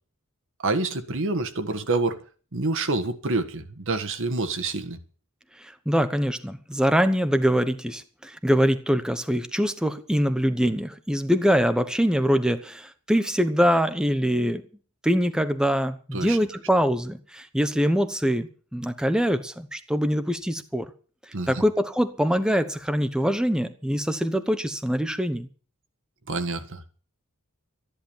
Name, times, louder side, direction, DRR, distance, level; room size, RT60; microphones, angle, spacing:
voice 1, 0.6-2.2 2.5-5.0 16.1-16.4 21.3-21.5 26.3-26.9, right 3 dB, 65° right, 1.7 m, -27 dB
voice 2, 5.6-14.6 15.0-20.9 21.5-25.5, equal, 5° right, 1.0 m, -24 dB
14.0 x 10.5 x 7.3 m
head